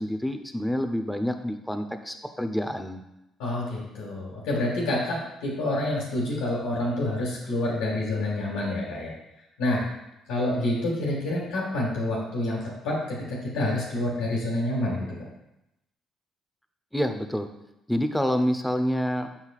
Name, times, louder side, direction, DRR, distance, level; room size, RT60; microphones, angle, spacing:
voice 1, 0.0-3.0 16.9-17.5 17.9-19.3, equal, 5° left, 7 dB, 0.8 m, -27 dB
voice 2, 3.4-9.1 9.6-9.8 10.3-12.6 12.8-15.1, left 1 dB, 85° left, -5 dB, 1.8 m, -28 dB
7.9 x 5.6 x 2.4 m, 0.88 s
hypercardioid pair, 55°, 0 cm